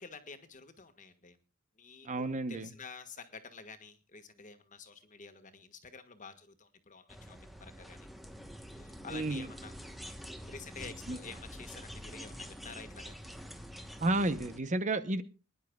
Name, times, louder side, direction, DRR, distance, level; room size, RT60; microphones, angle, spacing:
voice 1, 0.0-1.4 1.8-8.0 8.7-9.7 10.5-13.2, left 4 dB, 35° left, 8 dB, 1.5 m, -49 dB
voice 2, 2.0-2.7 9.1-9.5 11.1-11.2 14.0-15.2, right 2 dB, 35° right, 12 dB, 0.8 m, -31 dB
sound 1, 7.1-14.6, equal, ahead, 1.0 m, -47 dB
25.0 x 10.5 x 2.3 m, 0.32 s
head